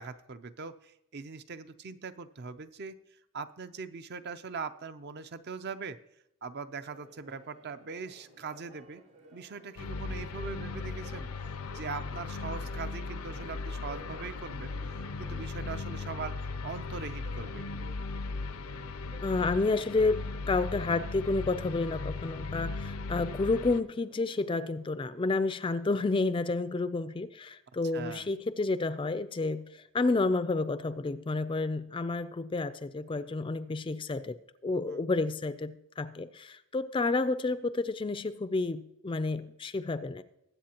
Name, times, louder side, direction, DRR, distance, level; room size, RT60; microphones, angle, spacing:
voice 1, 0.0-3.0 3.3-6.0 6.4-9.0 9.3-11.3 11.7-14.7 15.2-17.6 27.9-28.3 34.9-35.0, right 5 dB, 50° right, 11 dB, 0.5 m, -41 dB
Church bell, 6.8-25.2, right 2 dB, 80° right, 4.6 m, -55 dB
sound 1, 9.8-23.8, left 3 dB, 85° left, 0.6 m, -37 dB
voice 2, 19.2-40.2, left 3 dB, 25° left, 13 dB, 0.3 m, -30 dB
20.5 x 8.3 x 2.9 m, 0.83 s
head